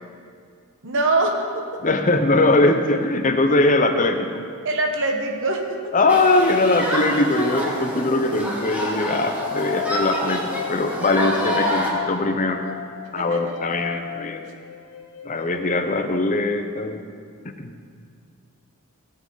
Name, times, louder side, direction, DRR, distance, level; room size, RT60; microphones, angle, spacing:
voice 1, 0.8-1.5 4.6-5.8 11.2-11.3 13.2-13.4, right 2 dB, 60° right, 3 dB, 1.3 m, -23 dB
voice 2, 1.8-4.4 5.9-12.6 13.1-14.4 15.2-17.0 17.4-17.7, left 2 dB, 35° left, 6 dB, 0.8 m, -21 dB
sound 1, 5.0-6.5 7.7-16.8, left 9 dB, 85° left, 0.9 m, -35 dB
Human group actions, 6.1-11.9, equal, 5° right, 1.6 m, -27 dB
17.5 x 7.5 x 4.0 m, 2.2 s
head